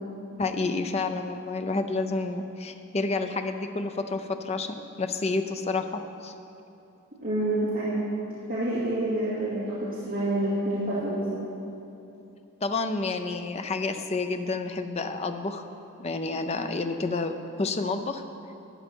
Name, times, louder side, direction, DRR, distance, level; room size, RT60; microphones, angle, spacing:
voice 1, 0.4-6.3 12.6-15.6 16.0-17.3 17.6-18.2, left 3 dB, 30° left, 7 dB, 0.5 m, -29 dB
voice 2, 7.2-8.1 8.5-11.4, right 1 dB, 40° right, -12 dB, 2.5 m, -28 dB
13.0 x 9.1 x 4.6 m, 2.8 s
head